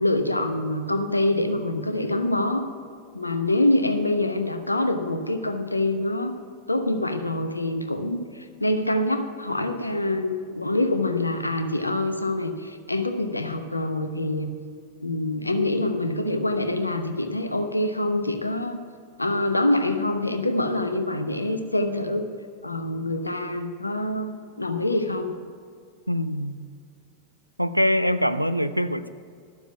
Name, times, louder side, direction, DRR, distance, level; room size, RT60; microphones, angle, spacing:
voice 1, 0.0-2.7 3.1-6.3 6.7-14.5 15.0-18.8 19.2-22.3 22.6-25.3, left 1 dB, 85° left, 0.9 m, -25 dB
voice 2, 26.1-26.6 27.6-29.1, equal, 90° right, 0.4 m, -23 dB
12.0 x 7.1 x 7.1 m
figure-of-eight pair, 90°, 0 cm